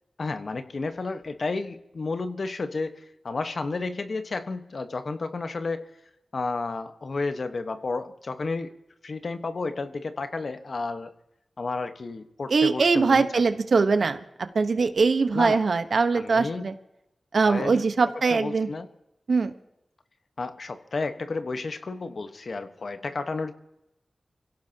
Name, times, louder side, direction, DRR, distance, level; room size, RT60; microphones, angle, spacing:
voice 1, 0.2-3.0 3.2-5.9 6.3-8.7 9.0-11.1 11.6-13.4 15.3-15.6 16.1-16.7 17.4-17.8 18.3-18.9 20.4-23.5, left 3 dB, 65° left, 8 dB, 1.3 m, -31 dB
voice 2, 12.5-14.2 14.5-16.7 17.3-18.7 19.3-19.5, right 4 dB, 75° right, 9 dB, 1.1 m, -22 dB
25.0 x 16.5 x 2.9 m, 0.90 s
cardioid pair, 45°, 0 cm